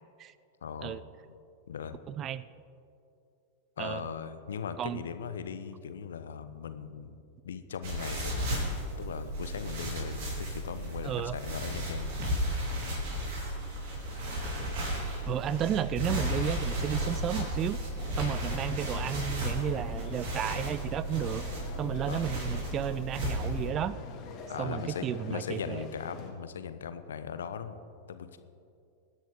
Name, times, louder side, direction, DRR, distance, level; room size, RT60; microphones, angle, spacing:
voice 1, 0.6-1.0 1.3-1.4 1.7-2.0 3.8-12.2 22.1-22.2 24.5-27.8 28.1-28.4, left 7 dB, 65° left, 11 dB, 0.9 m, -39 dB
voice 2, 2.1-2.5 3.8-4.0 4.8-5.0 11.0-11.4 15.3-17.8 18.2-21.4 21.8-24.0 24.6-25.9, right 10 dB, 30° right, 17 dB, 0.4 m, -33 dB
sound 1, 7.8-23.7, equal, 50° right, 4.2 m, -34 dB
sound 2, 18.0-26.3, left 5 dB, 35° left, 2.2 m, -44 dB
24.5 x 10.0 x 3.8 m, 2.5 s
figure-of-eight pair, 90°, 0 cm